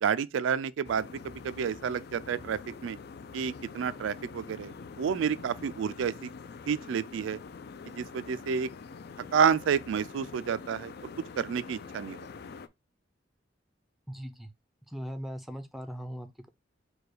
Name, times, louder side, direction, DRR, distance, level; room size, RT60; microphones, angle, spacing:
voice 1, 0.0-3.0 3.3-6.3 6.7-7.4 8.0-8.7 9.3-11.1 11.4-12.3, right 7 dB, 85° right, 0.3 m, -30 dB
sound 1, 0.8-12.7, left 5 dB, 55° left, 0.4 m, -45 dB
voice 2, 14.1-14.5 14.9-16.5, equal, ahead, 0.5 m, -39 dB
4.8 x 2.3 x 4.7 m
head